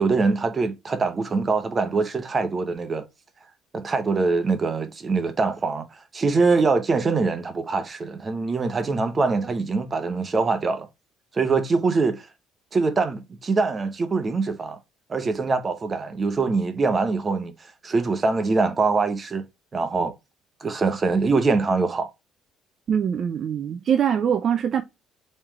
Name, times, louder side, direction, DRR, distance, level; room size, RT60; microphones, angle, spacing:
voice 1, 0.0-3.1 3.7-10.9 11.3-12.3 12.7-14.8 15.1-17.5 17.8-19.4 19.7-20.1 20.6-22.1, right 4 dB, 25° right, 0.7 m, -23 dB
voice 2, 22.9-24.8, right 8 dB, 40° right, 0.4 m, -23 dB
3.6 x 3.1 x 3.0 m
cardioid pair, 130°, 0 cm